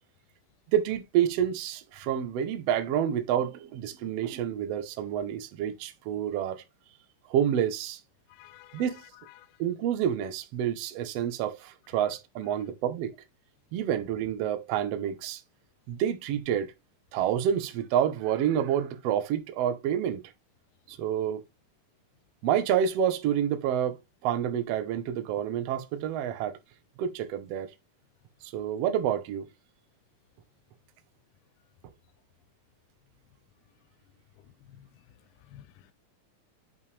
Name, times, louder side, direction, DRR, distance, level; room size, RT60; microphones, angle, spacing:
voice 1, 0.7-6.6 7.3-8.0 8.7-9.0 9.6-13.1 13.7-15.4 15.9-16.7 17.1-20.2 20.9-21.4 22.4-26.6 27.0-27.7 28.4-29.5, right 9 dB, 75° right, 1.4 m, -28 dB
voice 2, 8.3-8.9 9.4-9.5 34.8-34.9 35.4-35.9, left 12 dB, 80° left, 1.8 m, -52 dB
7.1 x 5.6 x 3.2 m
omnidirectional pair, 4.0 m